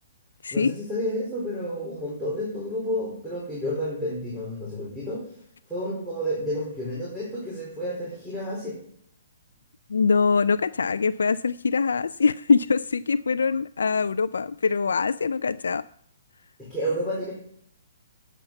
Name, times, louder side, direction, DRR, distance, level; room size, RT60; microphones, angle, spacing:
voice 1, 0.5-5.2 5.7-8.8 16.6-17.3, equal, ahead, -8 dB, 4.0 m, -30 dB
voice 2, 9.9-15.8, left 5 dB, 85° left, 14 dB, 0.3 m, -23 dB
9.0 x 7.2 x 6.9 m, 0.67 s
hypercardioid pair, 145°, 0 cm